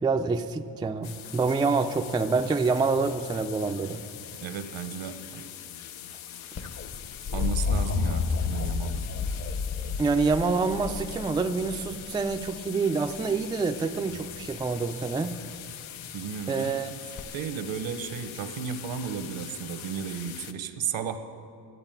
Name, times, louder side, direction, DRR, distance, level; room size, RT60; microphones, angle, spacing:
voice 1, 0.0-4.0 10.0-15.4 16.5-16.9, right 4 dB, 10° right, 7 dB, 0.3 m, -27 dB
sound 1, 1.0-20.5, left 10 dB, 85° left, 0.7 m, -43 dB
voice 2, 4.4-5.5 7.3-9.1 16.1-17.0 17.3-21.2, right 7 dB, 70° right, 10 dB, 1.0 m, -34 dB
sound 2, 6.6-12.5 14.1-14.6 17.2-17.3, left 5 dB, 35° left, 0.8 m, -30 dB
11.0 x 8.2 x 8.9 m, 2.4 s
cardioid pair, 100°, 46 cm